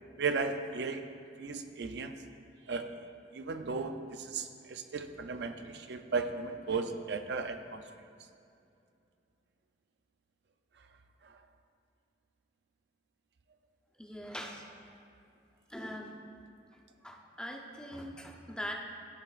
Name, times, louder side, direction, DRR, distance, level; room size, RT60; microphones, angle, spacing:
voice 1, 0.2-1.0 1.4-2.1 2.7-2.9 3.3-7.8 11.2-11.4, right 4 dB, 65° right, 8 dB, 0.4 m, -35 dB
voice 2, 14.0-14.6 15.7-16.2 17.0-18.7, equal, 5° left, 0 dB, 0.6 m, -42 dB
15.0 x 5.6 x 2.4 m, 2.5 s
head